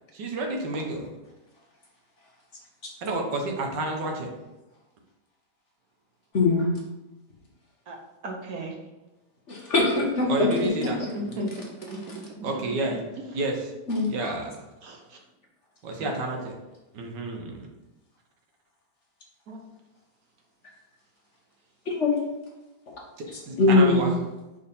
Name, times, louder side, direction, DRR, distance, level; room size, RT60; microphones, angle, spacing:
voice 1, 0.1-1.1 3.0-4.3 10.3-11.0 11.2-11.3 12.4-13.0 13.3-13.7 14.1-14.6 15.8-16.5 16.9-17.7 23.2-24.2, right 2 dB, 80° right, 2 dB, 1.7 m, -30 dB
voice 2, 6.3-6.7 9.5-10.3 13.9-14.3 21.9-22.1 23.6-24.1, left 3 dB, 45° left, -2 dB, 1.5 m, -21 dB
voice 3, 7.9-8.8 11.1-11.5 11.9-12.2 14.8-15.2 19.5-19.6, right 3 dB, 60° right, 1 dB, 1.3 m, -36 dB
5.4 x 4.2 x 5.3 m, 1.0 s
omnidirectional pair, 1.9 m